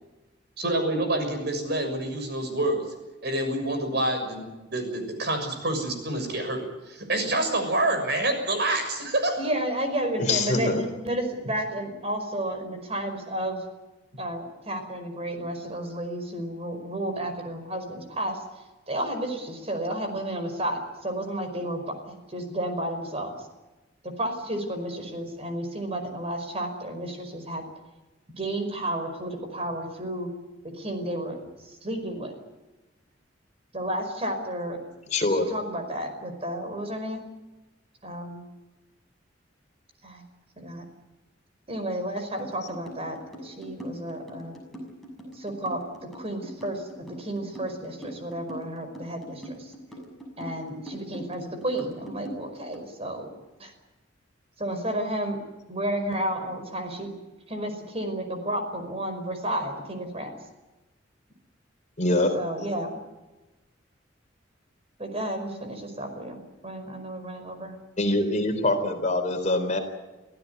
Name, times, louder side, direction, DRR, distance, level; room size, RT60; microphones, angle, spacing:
voice 1, 0.6-2.8 3.2-9.3, right 1 dB, 60° right, 6 dB, 6.5 m, -27 dB
voice 2, 9.4-13.6 14.2-23.5 24.0-27.6 28.3-30.3 30.6-32.4 33.7-34.8 35.3-37.3 38.0-38.5 40.0-40.2 40.5-40.8 41.7-44.6 45.3-45.8 46.1-49.7 50.4-53.7 54.6-55.4 55.7-57.1 57.5-60.3 62.3-63.0 65.0-67.8, right 1 dB, 30° right, 6 dB, 5.1 m, -32 dB
voice 3, 10.2-10.8 35.1-35.5 62.0-62.3 68.0-69.8, left 2 dB, 40° left, 5 dB, 3.9 m, -24 dB
sound 1, 42.4-52.9, equal, ahead, 6.6 m, -41 dB
25.5 x 16.0 x 9.5 m, 1.1 s
head